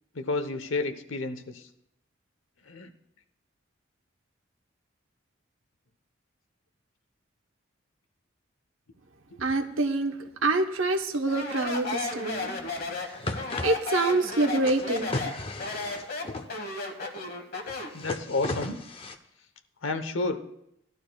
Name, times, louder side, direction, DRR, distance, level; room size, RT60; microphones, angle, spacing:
voice 1, 0.1-1.6 2.7-2.9 9.3-9.4 17.9-18.8 19.8-20.4, left 3 dB, 80° left, 1.0 m, -30 dB
voice 2, 9.4-12.6 13.2-15.3, right 2 dB, 85° right, 1.0 m, -27 dB
Speech, 11.3-18.0, left 3 dB, 50° left, 1.4 m, -34 dB
sound 1, 12.8-12.9 13.1-13.7 14.7-16.5 17.7-19.2, left 2 dB, 30° left, 0.6 m, -35 dB
18.5 x 12.0 x 2.3 m
head